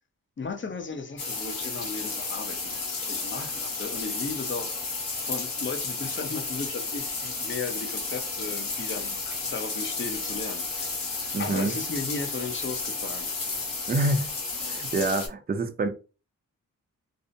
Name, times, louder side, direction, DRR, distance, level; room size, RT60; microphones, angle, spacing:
voice 1, 0.4-9.2 9.4-13.6, left 4 dB, 35° left, 0.6 m, -36 dB
sound 1, 1.2-15.3, left 3 dB, 70° left, 1.1 m, -32 dB
voice 2, 11.3-11.8 13.9-14.3 14.6-15.9, right 2 dB, 30° right, 0.5 m, -26 dB
2.6 x 2.1 x 2.6 m
cardioid pair, 60°, 34 cm